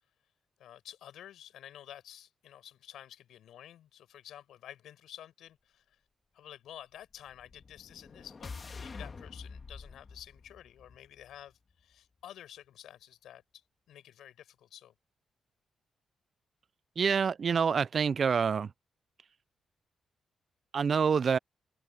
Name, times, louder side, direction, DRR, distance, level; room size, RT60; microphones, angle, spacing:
voice 1, 0.6-6.0 6.3-13.6 13.9-14.9 20.9-21.1, left 11 dB, 85° left, 6.2 m, -51 dB
sound 1, 7.3-11.5, left 4 dB, 40° left, 2.0 m, -47 dB
voice 2, 17.0-18.7 20.7-21.4, right 6 dB, 50° right, 0.4 m, -27 dB
cardioid pair, 90°, 0 cm